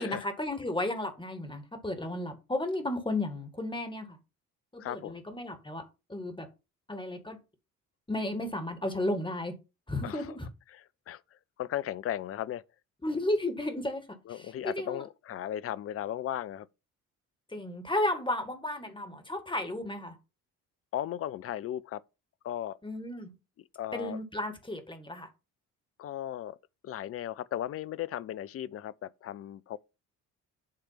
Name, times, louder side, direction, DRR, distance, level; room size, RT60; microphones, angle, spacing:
voice 1, 0.0-4.2 4.7-5.8 6.1-6.5 6.9-7.4 8.1-9.6 9.9-10.5 13.0-14.0 14.3-15.0 17.5-20.2 22.8-23.3 23.9-25.3, left 1 dB, 10° left, 1.9 m, -33 dB
voice 2, 4.8-5.2 10.0-10.3 10.7-11.2 11.6-12.6 14.3-16.7 20.9-22.0 22.4-22.8 23.8-24.2 26.0-26.6 26.8-29.8, left 11 dB, 35° left, 0.5 m, -36 dB
8.8 x 3.3 x 5.7 m
hypercardioid pair, 50°, 43 cm